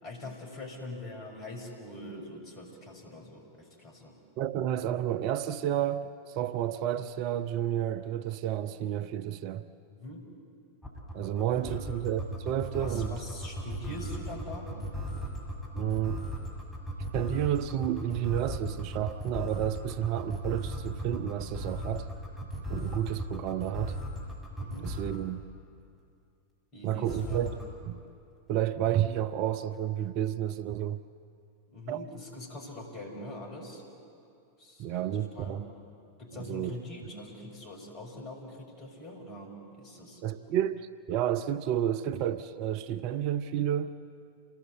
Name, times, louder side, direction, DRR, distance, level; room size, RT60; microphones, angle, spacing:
voice 1, 0.0-4.2 9.9-10.3 11.4-11.8 12.7-14.8 24.6-25.0 26.7-27.5 31.7-33.8 34.6-35.7 36.2-40.2, left 1 dB, 35° left, 6.0 m, -43 dB
voice 2, 4.4-9.6 11.1-13.1 15.8-16.3 17.1-22.1 22.7-24.0 24.8-25.4 26.8-27.6 27.9-28.0 28.5-31.0 31.9-32.1 34.8-35.7 36.3-36.7 40.2-44.0, right 11 dB, 45° right, 0.6 m, -31 dB
sound 1, 10.8-25.2 27.0-27.6, equal, 5° left, 6.8 m, -36 dB
28.0 x 19.0 x 8.2 m
figure-of-eight pair, 90°, 0 cm